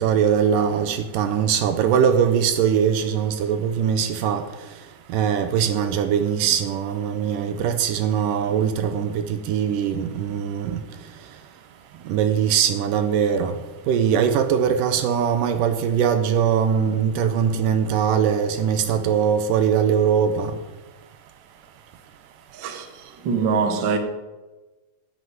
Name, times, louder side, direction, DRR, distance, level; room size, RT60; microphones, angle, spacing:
voice 1, 0.0-4.4 5.1-10.8 12.1-13.6 13.9-20.5, right 8 dB, 75° right, 2.3 m, -21 dB
voice 2, 22.5-24.0, right 5 dB, 50° right, 1.4 m, -24 dB
9.7 x 8.4 x 9.4 m
omnidirectional pair, 4.1 m